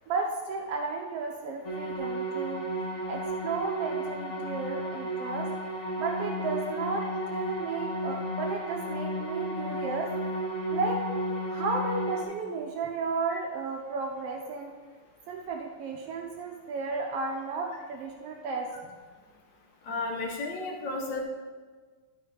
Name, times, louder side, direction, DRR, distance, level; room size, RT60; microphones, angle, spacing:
voice 1, 0.1-2.6 3.0-5.5 6.0-10.1 10.7-11.0 11.5-14.7 15.3-18.7, right 4 dB, 75° right, 2 dB, 1.4 m, -33 dB
sound 1, 1.6-12.2, right 1 dB, 25° left, 2.0 m, -33 dB
voice 2, 19.8-21.2, left 3 dB, 85° left, 0 dB, 1.0 m, -33 dB
11.5 x 5.4 x 4.8 m, 1.5 s
omnidirectional pair, 3.5 m